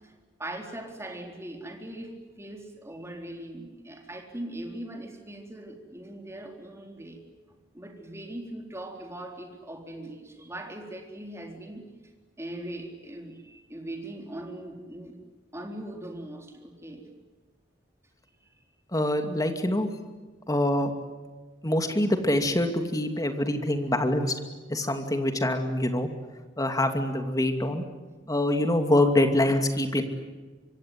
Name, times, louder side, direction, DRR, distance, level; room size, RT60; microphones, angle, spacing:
voice 1, 0.4-7.2 7.7-11.9 12.4-15.2 15.5-17.1, right 1 dB, 15° right, 3 dB, 4.0 m, -40 dB
voice 2, 18.9-19.9 20.5-20.9 21.6-24.3 24.7-26.1 26.6-27.8 28.3-30.0, left 1 dB, 20° left, 6 dB, 2.6 m, -25 dB
25.0 x 24.0 x 9.5 m, 1.3 s
head